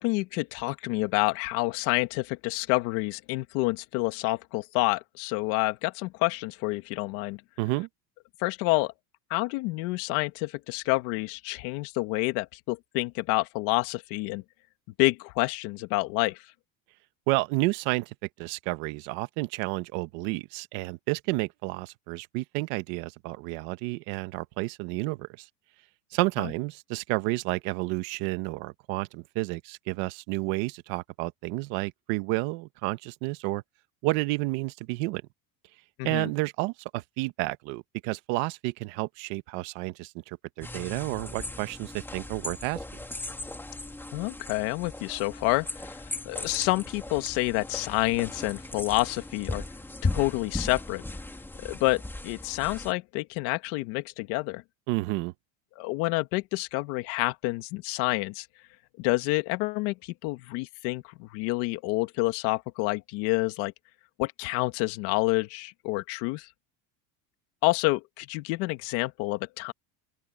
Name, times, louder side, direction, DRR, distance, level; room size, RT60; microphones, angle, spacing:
voice 1, 0.0-7.4 8.4-8.9 9.3-14.4 15.0-16.5 36.0-36.3 44.1-45.9 46.3-49.6 50.0-51.0 51.6-54.6 55.8-58.5 59.0-63.7 64.2-66.5 67.6-69.7, left 22 dB, 65° left, 1.9 m, -28 dB
voice 2, 7.6-7.9 17.3-25.5 26.1-33.6 34.0-35.2 36.0-42.8 54.9-55.3, right 22 dB, 65° right, 1.3 m, -31 dB
sound 1, 40.6-52.9, left 2 dB, 5° left, 2.9 m, -38 dB
open air
cardioid pair, 155°, 44 cm